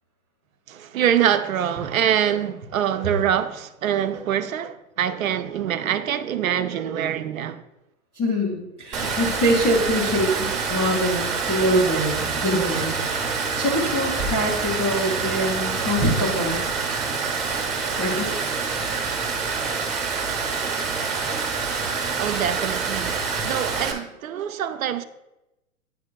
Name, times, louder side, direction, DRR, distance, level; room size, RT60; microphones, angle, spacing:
voice 1, 0.7-7.6 22.2-25.0, right 9 dB, 65° right, 0.6 m, -24 dB
voice 2, 8.1-12.9 13.6-16.6 18.0-18.3, equal, 10° left, 0.4 m, -24 dB
Water, 8.9-23.9, right 5 dB, 15° right, 0.8 m, -26 dB
9.4 x 4.8 x 2.2 m
hypercardioid pair, 135°, 44 cm